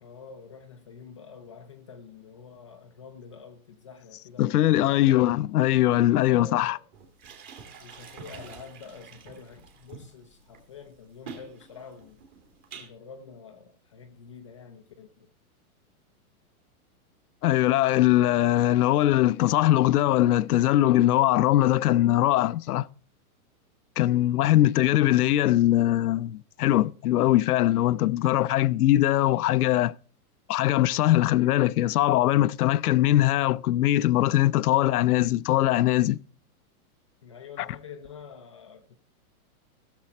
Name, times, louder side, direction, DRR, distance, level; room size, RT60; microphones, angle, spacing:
voice 1, 0.0-5.1 6.1-6.8 7.8-12.2 12.7-15.3 37.2-39.0, left 6 dB, 20° left, 0.5 m, -47 dB
voice 2, 4.4-6.8 17.4-22.9 24.0-29.9 30.5-36.2, left 14 dB, 85° left, 0.6 m, -21 dB
sound 1, 6.9-12.9, right 5 dB, 25° right, 2.2 m, -46 dB
16.0 x 7.0 x 4.4 m
supercardioid pair, 175°, 44 cm